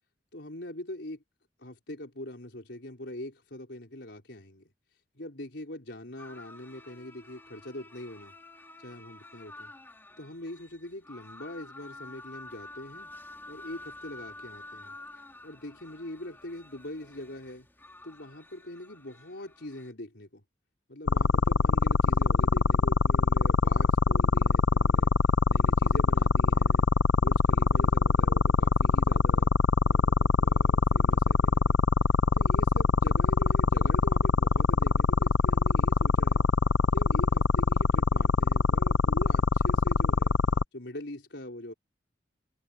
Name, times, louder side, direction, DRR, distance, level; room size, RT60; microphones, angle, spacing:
voice 1, 0.3-1.2 1.6-8.3 8.8-9.7 10.2-13.1 13.5-15.0 15.4-17.7 18.0-20.4 20.9-25.1 25.5-26.9 27.2-29.5 29.8-31.8 32.3-36.5 36.9-40.3 40.7-41.7, left 1 dB, 70° left, 4.7 m, -42 dB
sound 1, 6.2-19.9, left 2 dB, 10° left, 3.5 m, -49 dB
sound 2, 21.1-40.6, left 4 dB, 90° left, 0.6 m, -23 dB
head